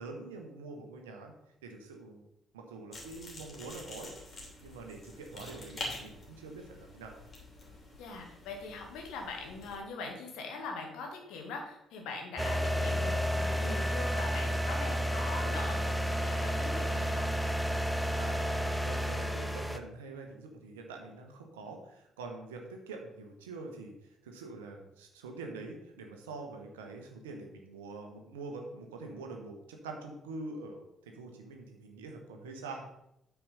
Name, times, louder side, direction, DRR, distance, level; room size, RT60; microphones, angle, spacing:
voice 1, 0.0-1.4 1.6-2.2 2.5-7.2 18.1-18.4 18.8-32.9, right 3 dB, 75° right, 2 dB, 1.1 m, -45 dB
sound 1, 2.9-9.8, left 2 dB, 40° left, 3.1 m, -46 dB
voice 2, 8.0-17.3, left 3 dB, 60° left, 2 dB, 1.7 m, -42 dB
sound 2, 12.4-19.8, equal, ahead, 0.8 m, -31 dB
8.8 x 4.8 x 5.6 m, 0.83 s
figure-of-eight pair, 45°, 0 cm